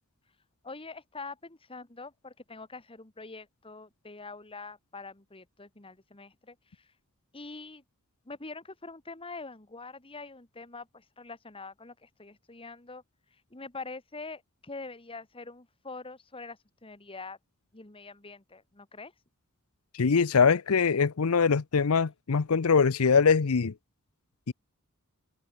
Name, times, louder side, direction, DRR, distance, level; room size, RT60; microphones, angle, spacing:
voice 1, 0.6-6.6 7.3-7.8 8.3-13.0 13.5-17.4 17.7-19.1, left 3 dB, 25° left, 1.8 m, -44 dB
voice 2, 19.9-23.7 24.5-24.6, left 5 dB, 80° left, 0.7 m, -23 dB
head